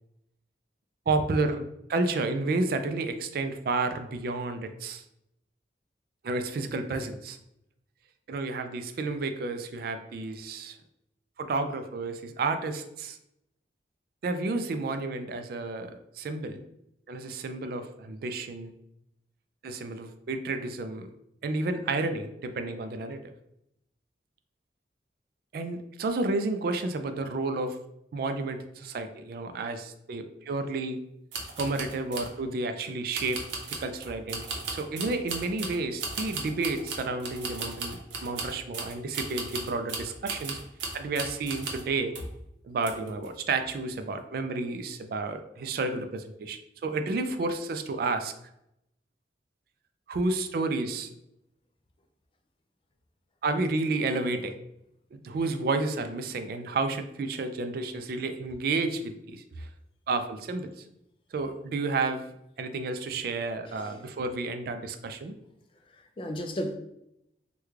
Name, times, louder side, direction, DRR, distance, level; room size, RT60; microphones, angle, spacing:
voice 1, 1.1-1.6 1.9-5.0 6.2-7.4 8.3-10.8 11.4-13.2 14.2-16.6 17.1-18.7 19.6-21.1 21.4-23.3 25.5-27.8 28.1-31.0 31.6-40.6 40.9-42.1 42.6-48.3 50.1-51.1 53.4-54.5 55.1-59.7 60.1-60.8 61.3-62.3 62.6-65.4, right 3 dB, 55° right, 8 dB, 0.3 m, -31 dB
sound 1, 31.3-32.3 33.1-41.9 42.1-42.4 42.8-43.3 43.6-43.8, right 4 dB, 80° right, 0.7 m, -37 dB
voice 2, 65.9-66.8, equal, 30° left, 5 dB, 0.3 m, -34 dB
3.1 x 2.2 x 3.5 m, 0.81 s
head